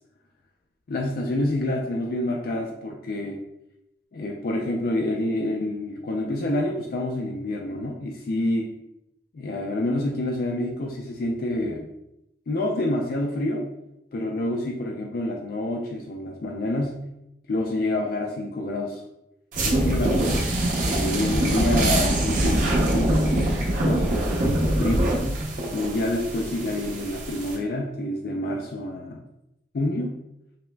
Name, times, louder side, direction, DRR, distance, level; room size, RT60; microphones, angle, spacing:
voice 1, 0.9-3.4 4.1-8.7 9.3-11.9 12.5-13.7 14.1-17.0 17.5-19.0 19.6-20.3 20.8-25.1 25.7-29.2 29.7-30.2, left 1 dB, 55° left, 1 dB, 0.4 m, -27 dB
sound 1, 19.5-27.6, right 1 dB, 45° right, 0.6 m, -24 dB
5.6 x 2.0 x 2.2 m, 0.85 s
head